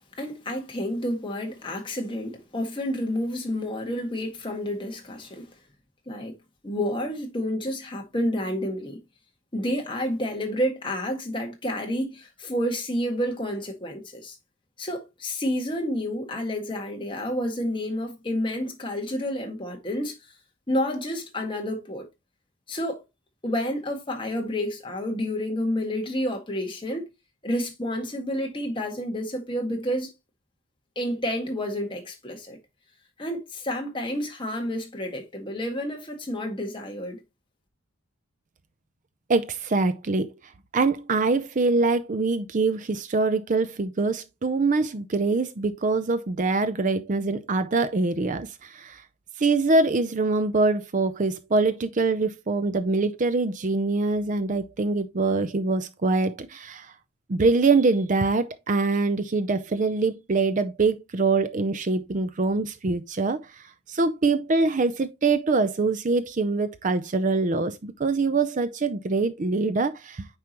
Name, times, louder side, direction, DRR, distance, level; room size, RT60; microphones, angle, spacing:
voice 1, 0.2-5.5 6.1-6.4 6.6-9.0 9.5-14.4 14.8-20.2 20.7-22.1 22.7-23.0 23.4-27.0 27.4-30.1 31.0-32.6 33.2-37.2, equal, 25° left, 1.8 m, -29 dB
voice 2, 39.3-40.3 40.7-49.0 49.4-56.9 57.3-70.3, right 3 dB, 35° right, 0.5 m, -24 dB
9.4 x 4.9 x 2.9 m
head